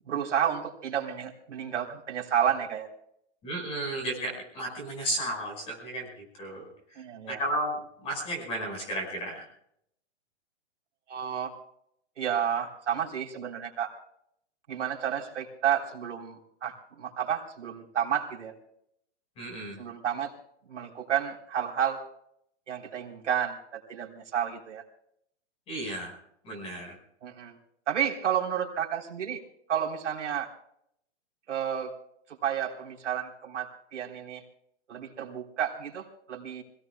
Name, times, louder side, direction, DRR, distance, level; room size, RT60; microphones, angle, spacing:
voice 1, 0.1-2.9 7.0-7.4 11.1-11.5 12.2-13.9 14.7-18.5 19.8-20.3 20.7-22.0 22.7-24.8 27.2-27.6 27.9-29.4 29.7-30.5 31.5-31.9 32.3-34.4 34.9-36.6, right 9 dB, 75° right, 0 dB, 3.7 m, -31 dB
voice 2, 3.4-6.6 6.9-7.0 7.3-9.5 19.4-19.8 25.7-26.1 26.4-27.0, right 1 dB, 15° left, 2 dB, 5.3 m, -33 dB
26.0 x 17.5 x 2.3 m, 0.73 s
hypercardioid pair, 170°, 36 cm